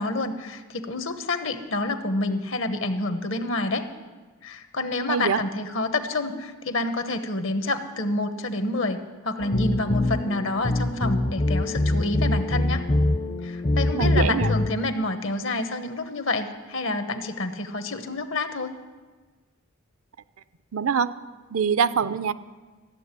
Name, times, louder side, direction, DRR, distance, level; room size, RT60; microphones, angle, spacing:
voice 1, 0.0-3.9 4.4-12.8 13.4-18.7, left 2 dB, 65° left, 9 dB, 1.1 m, -28 dB
voice 2, 5.1-5.4 13.9-14.5 20.7-21.1 21.5-22.3, right 6 dB, 80° right, 14 dB, 0.5 m, -24 dB
sound 1, 9.4-14.7, left 1 dB, 30° left, 0.5 m, -24 dB
14.0 x 7.4 x 9.7 m, 1.4 s
head